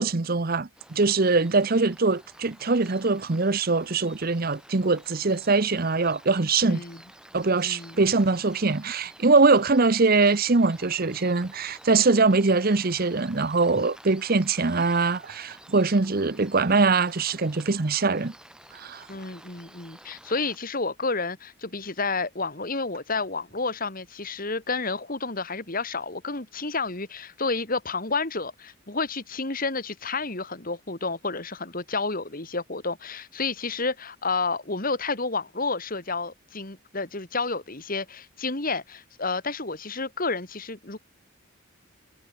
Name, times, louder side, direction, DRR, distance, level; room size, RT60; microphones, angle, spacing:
voice 1, 0.0-6.8 7.3-18.3 18.7-19.1, right 3 dB, 45° right, 0.8 m, -22 dB
sound 1, 0.8-20.6, right 1 dB, 5° right, 5.2 m, -51 dB
voice 2, 6.6-7.0 7.6-8.0 19.1-41.0, left 3 dB, 40° left, 2.3 m, -30 dB
head